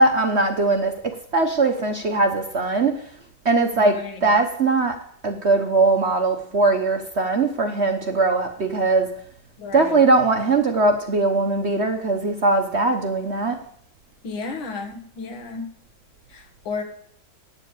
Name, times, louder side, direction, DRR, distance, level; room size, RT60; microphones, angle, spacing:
voice 1, 0.0-3.0 3.4-5.0 5.2-9.1 9.7-13.6, right 3 dB, 45° right, 5 dB, 1.0 m, -20 dB
voice 2, 3.8-4.4 9.6-10.0 14.2-15.7 16.3-16.8, left 4 dB, 80° left, 3 dB, 2.4 m, -33 dB
9.7 x 7.4 x 8.2 m, 0.63 s
omnidirectional pair, 2.1 m